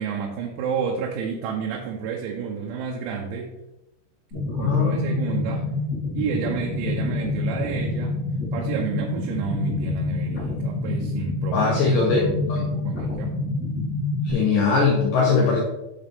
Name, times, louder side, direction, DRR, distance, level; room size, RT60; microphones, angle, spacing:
voice 1, 0.0-3.5 4.6-5.7 6.1-8.2 8.5-13.3, right 6 dB, 85° right, 0 dB, 3.2 m, -30 dB
sound 1, 4.3-14.3, left 2 dB, 50° left, 1.0 m, -27 dB
voice 2, 4.5-5.4 11.5-12.6 14.2-15.6, left 4 dB, 85° left, -3 dB, 1.8 m, -21 dB
8.8 x 6.5 x 3.5 m, 0.97 s
omnidirectional pair, 5.4 m